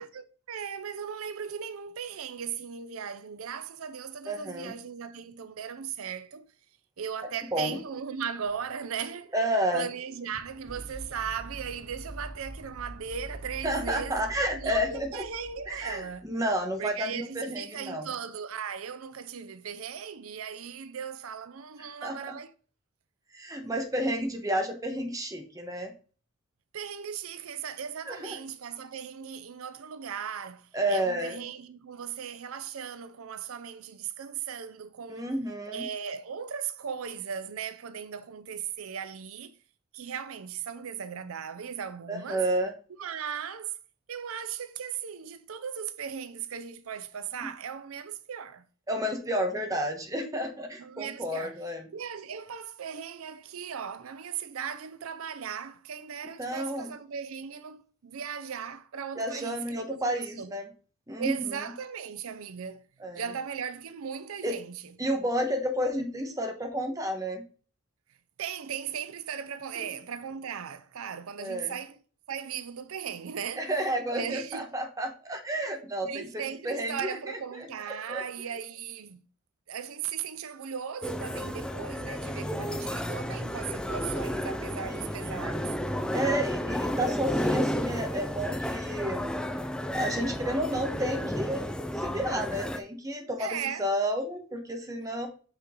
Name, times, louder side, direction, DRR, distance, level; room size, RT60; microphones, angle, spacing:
voice 1, 0.0-6.5 7.0-9.3 9.7-16.3 16.8-22.5 26.7-35.3 35.7-39.5 39.9-42.4 43.0-43.8 44.1-48.7 50.8-51.6 51.9-60.5 61.2-62.9 63.1-64.9 68.4-72.0 72.3-73.7 74.1-74.7 76.0-79.2 79.7-85.8 93.4-93.9, right 7 dB, 75° right, 0.5 m, -37 dB
voice 2, 4.3-4.7 7.5-7.8 9.3-9.9 13.6-15.2 15.7-18.1 22.0-22.4 23.3-25.9 28.1-28.4 30.7-31.4 35.1-35.8 42.1-42.7 47.4-47.5 48.9-51.9 56.4-56.9 59.2-60.7 61.1-61.6 63.0-63.3 64.4-64.5 65.0-67.4 71.4-71.7 73.6-77.2 77.5-77.7 78.1-78.2 84.9-85.5 86.1-89.3 89.9-95.3, equal, 15° right, 1.1 m, -31 dB
sound 1, 8.5-16.6, right 1 dB, 50° right, 2.6 m, -45 dB
sound 2, 81.0-92.8, equal, 5° left, 0.4 m, -32 dB
6.1 x 5.7 x 3.7 m
head